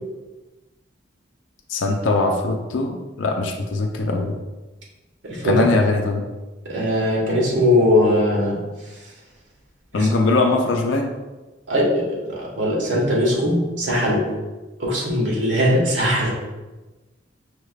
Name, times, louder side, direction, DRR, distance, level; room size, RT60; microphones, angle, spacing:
voice 1, 1.7-4.4 5.4-6.2 9.9-11.1, left 3 dB, 90° left, 2 dB, 0.5 m, -21 dB
voice 2, 6.7-8.6 11.7-12.1 12.6-14.2 14.8-16.3, left 1 dB, 90° right, -4 dB, 1.4 m, -19 dB
5.6 x 3.2 x 2.4 m, 1.1 s
head